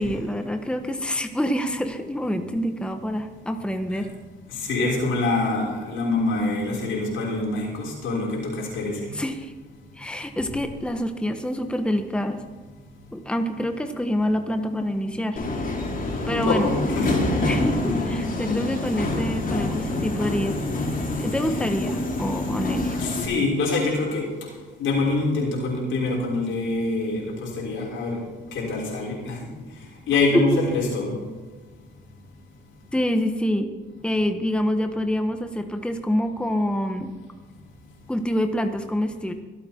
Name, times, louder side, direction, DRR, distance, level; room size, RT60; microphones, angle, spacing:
voice 1, 0.0-4.1 9.1-9.5 10.0-12.4 13.1-15.4 16.3-16.7 17.4-20.6 21.2-22.9 30.3-30.6 32.9-33.7 34.0-37.1 38.1-39.3, equal, 5° left, 6 dB, 1.2 m, -26 dB
voice 2, 4.5-9.1 16.3-17.1 23.0-24.3 24.8-28.2 28.5-29.4 30.1-31.2, left 3 dB, 80° left, -3 dB, 5.8 m, -25 dB
Subway metro underground, 15.4-23.3, left 2 dB, 45° left, 4.2 m, -26 dB
24.5 x 8.8 x 4.5 m, 1.3 s
cardioid pair, 90°, 20 cm